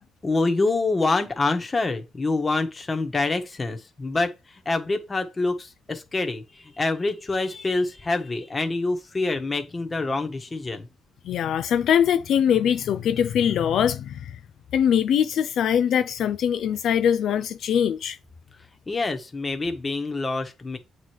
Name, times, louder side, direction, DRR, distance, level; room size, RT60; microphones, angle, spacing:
voice 1, 0.2-4.3 4.6-6.4 6.8-10.9 18.9-20.8, left 3 dB, 25° left, 1.4 m, -26 dB
voice 2, 11.2-14.4 14.7-18.2, left 9 dB, 70° left, 0.4 m, -22 dB
7.9 x 3.3 x 4.6 m
cardioid pair, 90°, 0 cm